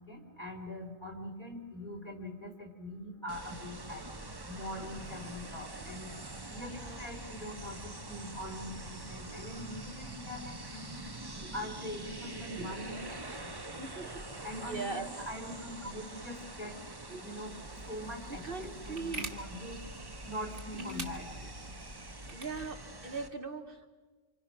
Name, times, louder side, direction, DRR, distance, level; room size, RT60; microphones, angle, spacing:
voice 1, 0.0-4.0 4.5-6.1 6.5-11.0 11.4-13.5 14.4-16.8 17.2-17.5 17.9-19.8 20.2-21.5, left 1 dB, 35° left, 2 dB, 3.9 m, -43 dB
sound 1, 3.3-23.3, right 2 dB, 20° right, 1.1 m, -45 dB
voice 2, 6.6-7.1 11.4-11.5 12.5-12.7 13.7-14.1 14.5-15.1 17.1-17.2 18.4-19.2 20.7-21.1 22.3-23.9, right 3 dB, 45° right, 5 dB, 1.3 m, -40 dB
sound 2, 17.4-22.7, right 3 dB, 60° right, 2.3 m, -46 dB
30.0 x 26.5 x 6.0 m, 1.3 s
omnidirectional pair, 1.4 m